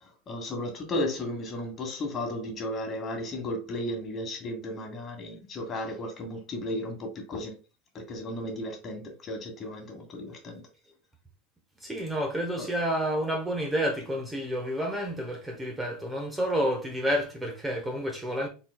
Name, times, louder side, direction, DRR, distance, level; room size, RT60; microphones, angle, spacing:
voice 1, 0.3-7.5 7.9-10.6 12.6-12.7, left 1 dB, 30° left, 1.5 m, -34 dB
voice 2, 11.8-18.5, equal, 10° right, 0.9 m, -29 dB
3.9 x 3.8 x 2.3 m
supercardioid pair, 120°, 0 cm